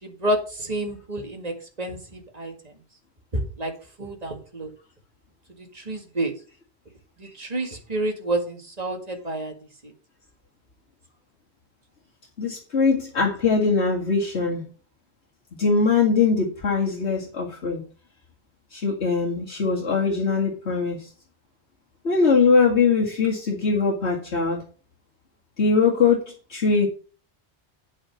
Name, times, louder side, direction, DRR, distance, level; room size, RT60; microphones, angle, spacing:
voice 1, 0.0-2.5 3.3-3.7 4.0-4.7 5.6-6.3 7.2-9.5 9.8-9.9, right 1 dB, 35° right, 2 dB, 2.1 m, -29 dB
voice 2, 12.4-14.6 15.6-17.8 18.7-21.1 22.0-24.6 25.6-26.9, left 4 dB, 80° left, -3 dB, 2.3 m, -21 dB
8.9 x 5.8 x 5.9 m, 0.37 s
omnidirectional pair, 1.1 m